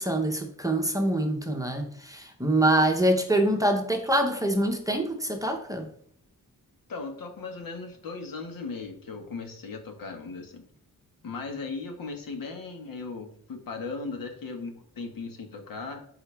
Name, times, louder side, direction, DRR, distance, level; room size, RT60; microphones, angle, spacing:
voice 1, 0.0-5.9, right 1 dB, 10° right, 3 dB, 0.8 m, -25 dB
voice 2, 6.9-10.7 11.2-16.0, left 4 dB, 70° left, 4 dB, 1.8 m, -37 dB
12.5 x 4.8 x 3.5 m, 0.63 s
wide cardioid pair, 170°, 35 cm